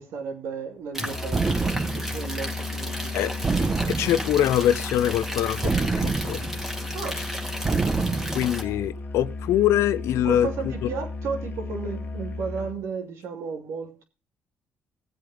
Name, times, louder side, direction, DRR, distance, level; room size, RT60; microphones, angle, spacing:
voice 1, 0.0-3.3 6.9-7.2 10.2-14.0, right 5 dB, 75° right, 2.8 m, -34 dB
sound 1, 0.9-8.6, equal, 5° right, 2.0 m, -35 dB
Musical instrument, 1.0-12.8, left 3 dB, 40° left, 1.5 m, -35 dB
sound 2, 1.3-2.2 3.4-4.4 5.6-6.7 7.6-8.5, right 4 dB, 25° right, 1.1 m, -26 dB
voice 2, 3.1-6.4 8.3-10.9, left 11 dB, 75° left, 0.7 m, -24 dB
16.0 x 7.9 x 5.0 m
cardioid pair, 85°, 5 cm